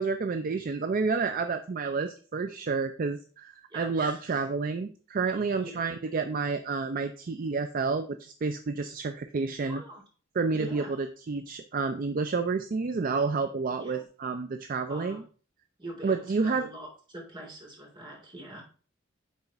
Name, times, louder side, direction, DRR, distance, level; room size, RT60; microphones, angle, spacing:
voice 1, 0.0-9.8 10.4-10.8 11.3-15.2 16.0-16.7, right 4 dB, 45° right, 8 dB, 0.4 m, -29 dB
voice 2, 3.7-4.2 5.6-5.9 9.6-10.0 10.5-11.0 13.8-14.1 14.9-15.2 15.8-18.6, right 1 dB, 25° right, -3 dB, 2.4 m, -43 dB
9.6 x 4.0 x 3.5 m, 0.40 s
head